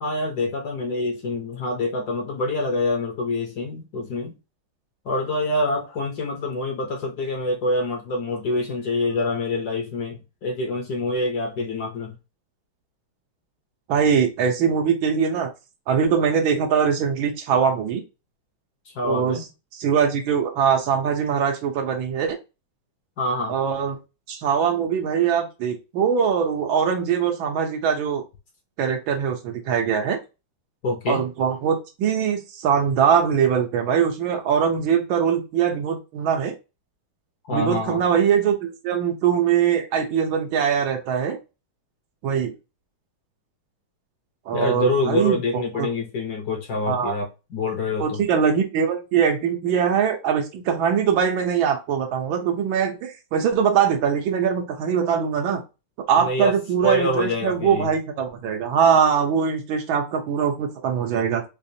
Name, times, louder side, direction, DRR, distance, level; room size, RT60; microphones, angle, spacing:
voice 1, 0.0-4.3 5.0-12.2 18.9-19.5 23.2-23.5 30.8-31.3 37.5-38.0 44.5-48.2 56.2-56.6 56.8-57.9, left 2 dB, 60° left, 1.1 m, -26 dB
voice 2, 13.9-15.5 15.9-18.0 19.0-19.4 19.7-22.4 23.5-24.0 24.3-28.2 28.8-30.2 31.1-36.5 37.5-41.4 42.2-42.5 44.5-45.9 46.9-47.2 48.0-55.6 56.1-61.4, right 7 dB, 75° right, 1.6 m, -22 dB
4.8 x 2.5 x 2.7 m
omnidirectional pair, 2.2 m